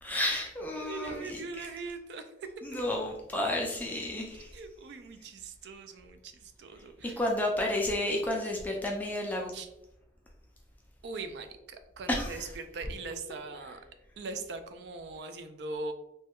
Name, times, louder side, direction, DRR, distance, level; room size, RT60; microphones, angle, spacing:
voice 1, 0.0-1.7 2.6-4.5 7.0-9.5 12.1-12.5, left 1 dB, 10° left, -1 dB, 0.3 m, -31 dB
voice 2, 0.8-2.3 4.5-7.2 9.5-9.7 11.0-13.8 14.2-15.9, right 3 dB, 65° right, 8 dB, 0.4 m, -41 dB
3.2 x 2.2 x 2.9 m, 0.88 s
head